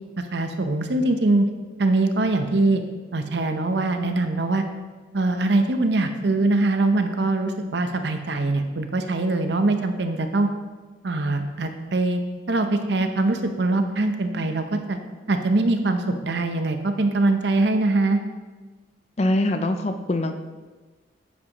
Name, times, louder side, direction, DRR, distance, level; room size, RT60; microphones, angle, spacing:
voice 1, 0.2-1.5 1.8-2.8 3.1-4.6 5.1-10.5 11.0-12.2 12.5-15.0 15.3-18.2, right 2 dB, 70° right, 7 dB, 0.7 m, -22 dB
voice 2, 19.2-20.3, left 1 dB, 35° left, 7 dB, 0.5 m, -23 dB
9.7 x 7.4 x 3.0 m, 1.3 s
head